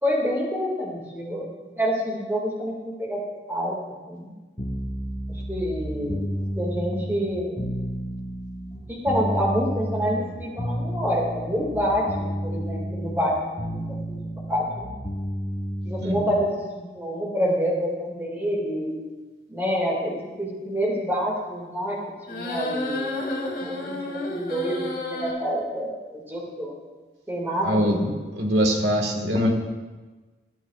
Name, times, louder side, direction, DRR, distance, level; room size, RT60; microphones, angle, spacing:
voice 1, 0.0-1.5 1.8-3.2 3.5-3.8 4.1-4.3 5.3-6.3 6.6-7.6 8.9-13.8 14.1-14.9 15.8-19.0 19.5-22.0 22.3-23.1 23.6-24.8 25.1-26.7 27.3-28.0, equal, 10° right, -2 dB, 2.0 m, -27 dB
sound 1, 4.6-16.5, equal, 30° left, 1.2 m, -31 dB
sound 2, 22.3-25.3, left 2 dB, 60° left, 2.3 m, -31 dB
voice 2, 27.6-29.5, equal, 75° right, 2 dB, 1.7 m, -23 dB
17.0 x 11.0 x 2.4 m, 1.3 s
head